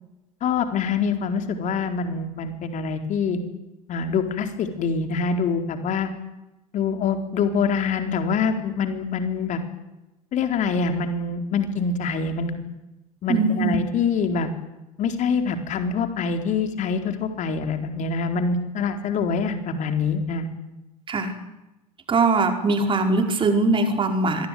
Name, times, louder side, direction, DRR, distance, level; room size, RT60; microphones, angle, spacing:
voice 1, 0.4-3.4 3.9-6.1 6.7-9.6 10.3-12.6 13.2-14.5 15.0-20.5, left 5 dB, 40° left, 7 dB, 4.1 m, -25 dB
voice 2, 13.3-13.8 21.1-21.3 22.1-24.5, right 3 dB, 25° right, 5 dB, 5.1 m, -21 dB
26.0 x 21.5 x 9.5 m, 0.99 s
figure-of-eight pair, 75°, 20 cm